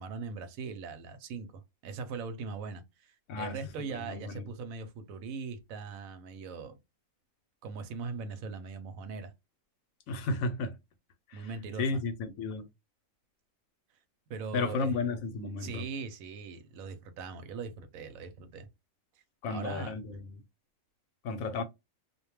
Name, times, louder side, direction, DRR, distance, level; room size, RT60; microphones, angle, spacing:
voice 1, 0.0-6.7 7.6-9.3 11.3-11.8 14.3-14.9 15.6-18.7 19.5-19.9, right 5 dB, 85° right, 1.0 m, -40 dB
voice 2, 3.3-4.5 10.1-10.8 11.3-11.5 11.8-12.7 14.5-15.9 19.4-20.4 21.2-21.6, left 3 dB, 85° left, 1.0 m, -33 dB
2.4 x 2.2 x 3.0 m
omnidirectional pair, 1.4 m